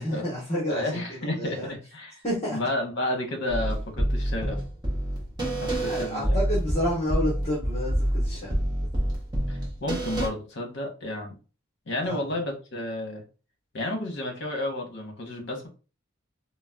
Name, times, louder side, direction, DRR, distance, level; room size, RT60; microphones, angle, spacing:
voice 1, 0.0-1.0 1.4-1.7 2.2-2.6 5.7-8.5 12.0-12.1, equal, 30° left, -6 dB, 1.0 m, -29 dB
voice 2, 0.7-2.2 2.5-4.6 5.6-6.4 9.5-11.3 11.9-13.2 13.7-15.7, left 1 dB, 55° left, 2 dB, 0.9 m, -31 dB
sound 1, 3.5-10.3, right 1 dB, 20° right, 0.8 m, -27 dB
3.9 x 2.1 x 2.2 m, 0.33 s
head